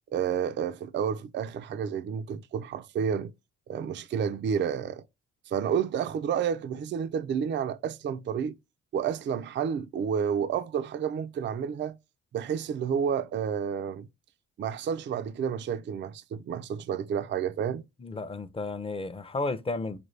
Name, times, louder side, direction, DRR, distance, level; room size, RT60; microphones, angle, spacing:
voice 1, 0.1-3.3 3.7-5.0 5.5-8.5 8.9-12.0 12.3-14.1 14.6-17.8, right 7 dB, 40° right, 0.4 m, -30 dB
voice 2, 18.0-20.0, left 3 dB, 20° left, 0.5 m, -33 dB
5.1 x 2.2 x 3.1 m
cardioid pair, 90°, 30 cm